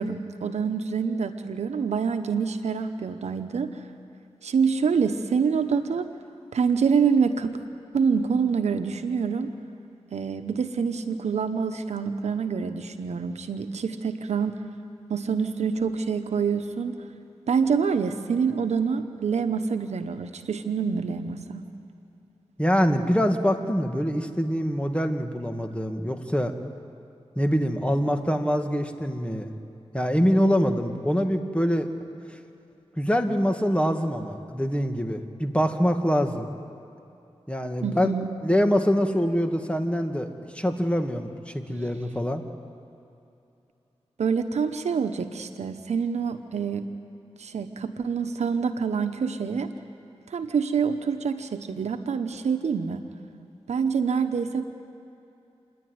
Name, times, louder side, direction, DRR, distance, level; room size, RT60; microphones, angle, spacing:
voice 1, 0.0-3.8 4.4-6.0 6.5-7.6 7.9-9.5 10.1-14.6 15.1-17.0 17.5-21.6 37.8-38.3 44.2-46.9 47.4-49.7 50.3-53.0 53.7-54.6, right 6 dB, 85° right, 8 dB, 1.0 m, -26 dB
voice 2, 22.6-26.5 27.4-29.5 29.9-31.9 33.0-36.5 37.5-38.1 38.4-42.4, equal, 10° left, 5 dB, 1.9 m, -24 dB
28.0 x 11.0 x 9.5 m, 2.8 s
cardioid pair, 45°, 11 cm